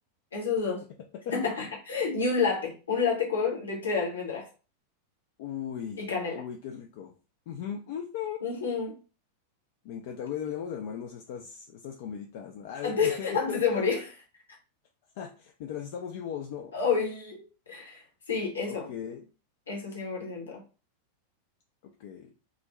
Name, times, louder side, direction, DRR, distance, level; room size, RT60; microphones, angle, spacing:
voice 1, 0.3-0.8 1.3-4.5 6.0-6.4 8.4-9.0 12.8-14.0 16.7-18.0 18.3-18.9 19.7-20.6, left 5 dB, 70° left, 0.8 m, -29 dB
voice 2, 5.4-6.1 6.4-7.1 7.5-8.4 9.8-13.9 15.2-16.8 18.6-19.2 21.8-22.3, left 8 dB, 50° left, 0.3 m, -37 dB
2.4 x 2.0 x 3.0 m
figure-of-eight pair, 90°, 0 cm